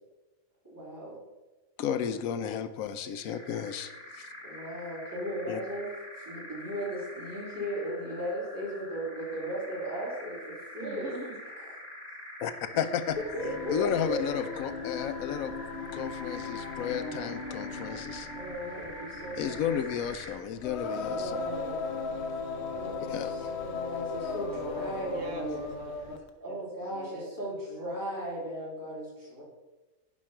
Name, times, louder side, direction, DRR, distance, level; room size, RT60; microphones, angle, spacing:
voice 1, 0.6-1.2 4.4-5.9 6.2-11.1 12.7-12.9 13.3-14.2 18.3-19.7 21.1-21.8 22.5-25.7 26.4-29.4, equal, 15° right, -7 dB, 3.8 m, -37 dB
voice 2, 1.8-4.3 5.5-5.6 12.4-13.2 13.7-15.6 15.9-18.3 19.4-21.5 23.0-23.6, left 8 dB, 80° left, 11 dB, 1.0 m, -33 dB
sound 1, 3.1-20.5, left 1 dB, 40° left, 1.9 m, -45 dB
voice 3, 10.8-11.4 24.7-26.6 26.9-27.5, right 2 dB, 65° right, 5 dB, 1.3 m, -45 dB
Singing, 13.1-26.3, left 4 dB, 55° left, 1.1 m, -37 dB
11.0 x 5.2 x 5.8 m, 1.1 s
omnidirectional pair, 1.4 m